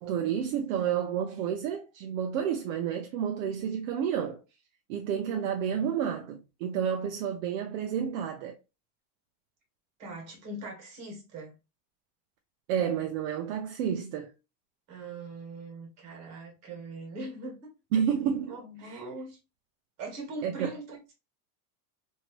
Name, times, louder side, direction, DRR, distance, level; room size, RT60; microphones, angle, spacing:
voice 1, 0.0-4.4 4.9-8.6 12.7-14.3 17.9-18.6 18.8-19.0 20.4-20.7, right 8 dB, 60° right, 0.6 m, -30 dB
voice 2, 10.0-11.5 14.9-17.7 18.5-19.4 20.0-21.1, right 2 dB, 35° right, 1.5 m, -41 dB
3.0 x 2.7 x 2.9 m
supercardioid pair, 160°, 45 cm